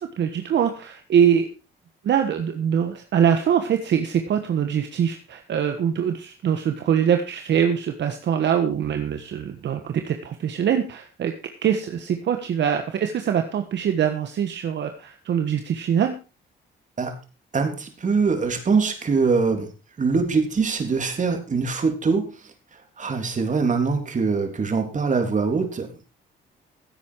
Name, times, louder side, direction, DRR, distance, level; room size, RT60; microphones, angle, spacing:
voice 1, 0.0-1.5 2.0-11.3 11.6-16.1, right 8 dB, 65° right, 6 dB, 1.4 m, -23 dB
voice 2, 17.5-19.7 20.0-26.1, right 4 dB, 40° right, 5 dB, 3.4 m, -23 dB
16.0 x 8.5 x 4.6 m, 0.33 s
cardioid pair, 90°, 20 cm